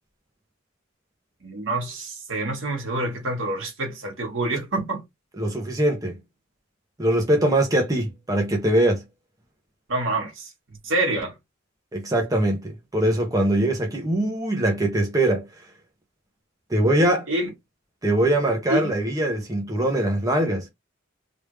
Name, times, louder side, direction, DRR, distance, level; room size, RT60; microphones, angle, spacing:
voice 1, 1.4-5.0 9.9-10.5 10.8-11.3 17.3-17.5 18.7-18.9, right 2 dB, 75° right, 1.6 m, -27 dB
voice 2, 5.4-6.2 7.0-9.0 11.9-15.5 16.7-17.3 18.0-20.7, right 1 dB, 20° right, 0.8 m, -22 dB
3.4 x 2.6 x 3.1 m
head